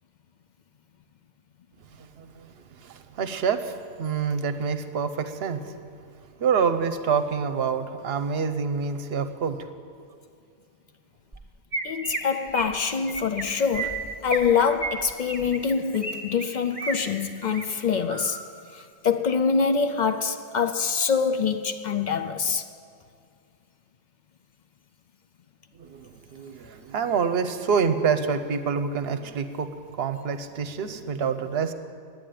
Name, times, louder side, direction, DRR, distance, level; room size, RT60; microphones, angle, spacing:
voice 1, 2.2-2.5 2.8-5.6 6.4-9.6 25.8-31.7, right 6 dB, 65° right, 0.9 m, -27 dB
Chirp tweet, 11.3-11.4 11.7-12.2 12.5-12.7 13.1-13.4 13.7-14.5 14.8-16.1 16.4-17.0 17.4-17.7 18.1-18.4, right 3 dB, 10° right, 1.3 m, -32 dB
voice 2, 11.8-18.4 18.7-22.7, left 6 dB, 55° left, 0.5 m, -25 dB
10.5 x 9.4 x 9.2 m
omnidirectional pair, 1.2 m